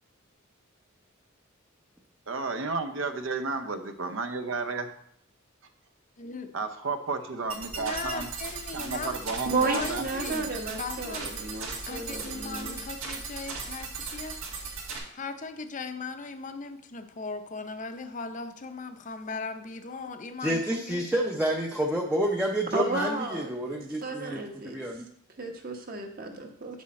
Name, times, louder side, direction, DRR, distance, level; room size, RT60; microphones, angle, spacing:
voice 1, 2.3-4.9 6.5-8.3 8.7-10.3, right 4 dB, 65° right, 8 dB, 0.7 m, -32 dB
voice 2, 6.2-6.5 7.8-9.2 9.7-11.3 11.9-14.4 15.1-21.4, left 4 dB, 35° left, 8 dB, 0.6 m, -38 dB
sound 1, 7.5-15.0, right 4 dB, 80° right, 1.7 m, -37 dB
voice 3, 9.5-12.8 22.7-24.8 25.4-26.8, right 3 dB, 45° right, 3 dB, 1.1 m, -33 dB
voice 4, 20.4-25.0, right 1 dB, 5° right, -1 dB, 0.6 m, -29 dB
7.4 x 6.3 x 4.2 m, 0.70 s
head